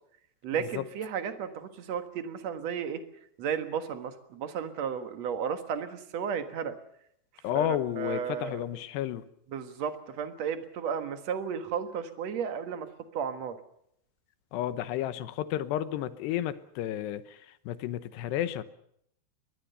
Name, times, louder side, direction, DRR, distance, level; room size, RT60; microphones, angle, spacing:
voice 1, 0.4-3.0 3.4-6.7 7.6-7.7 8.0-8.6 9.5-12.9 13.1-13.6, right 7 dB, 60° right, 8 dB, 1.9 m, -33 dB
voice 2, 7.4-9.2 14.5-18.6, left 12 dB, 80° left, 13 dB, 3.0 m, -32 dB
23.5 x 20.0 x 6.8 m, 0.71 s
omnidirectional pair, 5.0 m